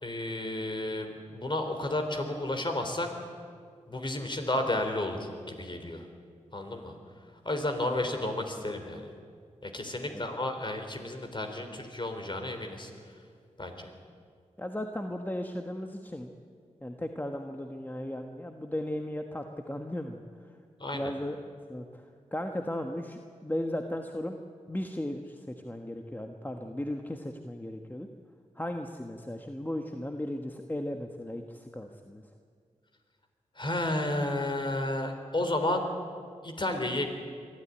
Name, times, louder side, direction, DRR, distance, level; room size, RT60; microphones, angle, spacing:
voice 1, 0.0-3.1 3.9-6.1 6.5-7.0 7.4-9.1 9.6-12.9 13.6-13.9 20.8-21.1 33.6-35.8 36.4-37.0, left 1 dB, 40° left, 5 dB, 3.7 m, -32 dB
voice 2, 14.6-16.3 16.8-20.2 20.9-21.4 21.7-22.1 22.3-24.4 24.7-28.1 28.5-32.2, left 1 dB, 15° left, 4 dB, 1.4 m, -36 dB
22.5 x 13.5 x 9.9 m, 2.1 s
cardioid pair, 45°, 13 cm